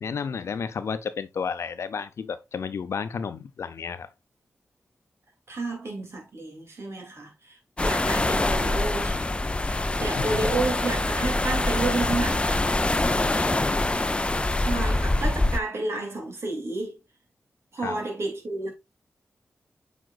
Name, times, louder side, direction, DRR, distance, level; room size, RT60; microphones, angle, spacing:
voice 1, 0.0-4.1 10.1-10.3 13.2-13.8 17.8-18.0, left 6 dB, 80° left, 0.7 m, -32 dB
voice 2, 5.5-9.3 9.7-12.7 14.6-17.0 17.7-18.7, right 2 dB, 65° right, 2.7 m, -31 dB
sound 1, 7.8-15.6, left 2 dB, 25° left, 0.5 m, -24 dB
7.9 x 5.0 x 2.4 m
cardioid pair, 55°, 5 cm